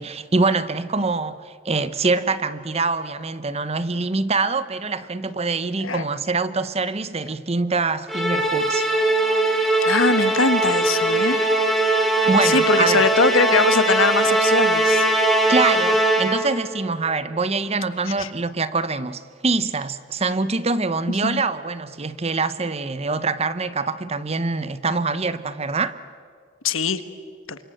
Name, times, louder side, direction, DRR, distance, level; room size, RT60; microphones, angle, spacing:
voice 1, 0.0-9.2 12.3-13.0 15.5-26.0, right 3 dB, 30° right, 0.8 m, -24 dB
Musical instrument, 8.1-16.6, right 2 dB, ahead, 2.6 m, -20 dB
voice 2, 9.8-11.5 12.4-15.1 18.2-18.3 21.2-21.4 26.6-27.0 27.5-27.6, left 4 dB, 90° left, 1.4 m, -21 dB
28.5 x 25.0 x 7.8 m
head